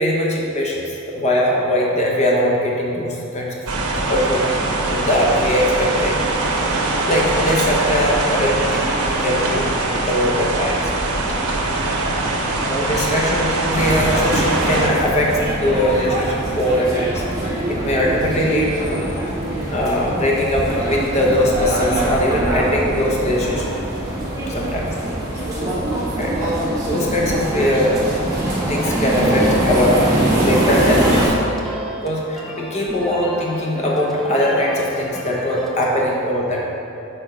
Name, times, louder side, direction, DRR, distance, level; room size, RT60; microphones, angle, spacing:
voice 1, 0.0-3.6 4.1-4.4 4.9-6.1 7.1-9.6 9.9-10.9 12.6-19.3 19.7-23.7 24.5-24.9 25.5-25.6 26.2-26.5 26.8-28.0 28.7-30.1 30.4-31.5 32.0-36.7, left 1 dB, 30° left, -3 dB, 0.9 m, -21 dB
sound 1, 3.7-14.9, right 2 dB, 90° right, 0.9 m, -22 dB
voice 2, 11.2-12.7 29.6-30.0, equal, 35° right, -3 dB, 0.9 m, -39 dB
sound 2, 13.7-31.3, right 1 dB, 15° right, 1.6 m, -23 dB
sound 3, 28.7-36.0, equal, ahead, 0.6 m, -34 dB
6.6 x 4.6 x 5.0 m, 2.8 s
head